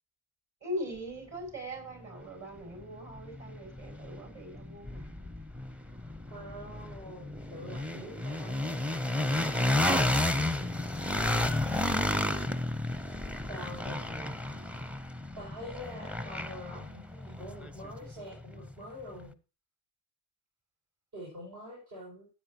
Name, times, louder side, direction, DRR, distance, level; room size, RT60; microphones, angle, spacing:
voice 1, 0.6-5.3, equal, 40° right, 3 dB, 6.7 m, -41 dB
sound 1, 2.2-2.3 2.8-18.7, left 1 dB, 5° right, 0.7 m, -32 dB
voice 2, 6.3-8.7 13.5-14.4 15.4-19.3 21.1-22.3, equal, 60° right, -6 dB, 6.6 m, -45 dB
15.5 x 8.8 x 3.0 m, 0.33 s
hypercardioid pair, 65°, 44 cm